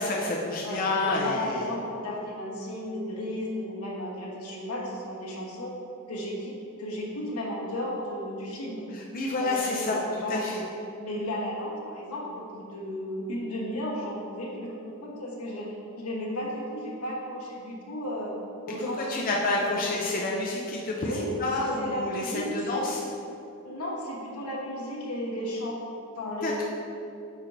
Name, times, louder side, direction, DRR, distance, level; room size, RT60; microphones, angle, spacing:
voice 1, 0.0-1.6 8.9-10.0 10.3-10.6 18.8-23.0 26.4-26.6, left 2 dB, 40° left, -2 dB, 0.5 m, -29 dB
voice 2, 0.6-5.7 6.1-6.5 6.8-8.8 9.4-10.4 11.0-18.3 18.6-19.3 19.6-19.8 21.0-21.3 21.6-22.9 23.6-25.8 26.2-26.6, left 1 dB, 80° left, -3 dB, 1.1 m, -34 dB
8.5 x 4.5 x 2.6 m, 2.6 s
head